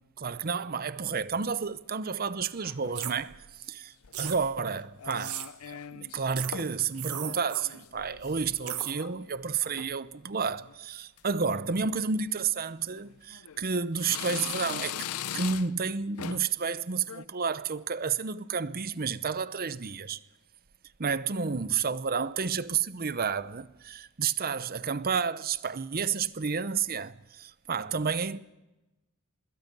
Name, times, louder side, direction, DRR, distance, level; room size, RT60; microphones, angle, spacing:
voice 1, 0.2-3.4 3.7-3.9 4.2-15.1 15.3-20.2 21.0-28.4, right 5 dB, 45° right, 0.8 m, -31 dB
sound 1, 2.6-3.4 4.0-4.6 5.0-6.2 6.5-6.9 7.2-9.2 9.5-10.0 10.5-10.8 11.2-11.3 12.2-12.4 13.0-13.6 14.0-15.9 16.2-16.6 17.0-17.3, left 9 dB, 85° left, 0.6 m, -40 dB
sound 2, 3.0-3.1 4.1-4.4 5.1-5.5 6.4-6.5 6.9-7.6 8.6-8.9, right 12 dB, 85° right, 1.5 m, -36 dB
25.5 x 21.5 x 5.4 m
head